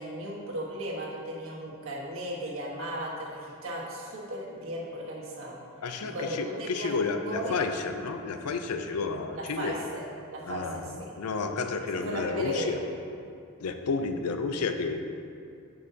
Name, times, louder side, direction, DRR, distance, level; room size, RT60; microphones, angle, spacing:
voice 1, 0.0-5.6 6.0-6.9 7.2-7.6 9.3-10.0 10.3-11.1 11.9-12.8, equal, 65° right, -4 dB, 1.3 m, -36 dB
voice 2, 5.8-9.8 10.4-12.8 13.6-15.0, left 4 dB, 90° left, 7 dB, 0.5 m, -31 dB
10.0 x 5.4 x 2.8 m, 2.5 s
head